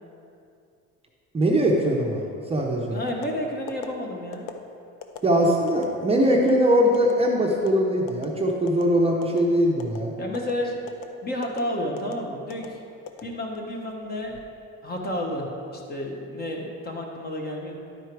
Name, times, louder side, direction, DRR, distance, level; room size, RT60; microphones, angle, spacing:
voice 1, 1.3-2.2 2.5-3.0 5.2-10.1, equal, 20° right, -1 dB, 0.7 m, -21 dB
voice 2, 2.7-4.5 10.2-11.0 11.2-12.8 13.2-14.4 14.8-17.8, left 1 dB, 30° left, 1 dB, 1.1 m, -31 dB
sound 1, 3.1-3.3 3.7-3.9 4.3-4.6 5.0-5.2 5.7-5.9 6.3-6.5 6.9-7.1 7.5-7.7 8.1-8.3 8.7-8.8 9.2-9.5 9.8-10.0 10.3-10.5 10.9-11.1 11.4-11.6 12.0-12.1 12.5-12.7 13.1-13.7 14.1-14.4, left 9 dB, 85° left, 0.7 m, -37 dB
10.5 x 4.6 x 4.6 m, 2.5 s
cardioid pair, 130°, 31 cm